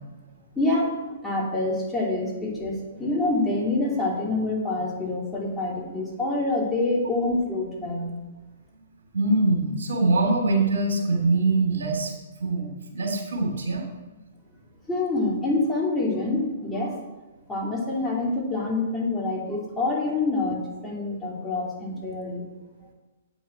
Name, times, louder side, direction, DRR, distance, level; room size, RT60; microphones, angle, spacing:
voice 1, 0.6-0.9 1.2-8.1 14.9-17.0 17.5-22.4, left 2 dB, 10° left, -5 dB, 2.9 m, -26 dB
voice 2, 9.1-13.9, right 2 dB, 70° right, 1 dB, 2.8 m, -24 dB
8.5 x 6.3 x 7.6 m, 1.2 s
hypercardioid pair, 125°, 0 cm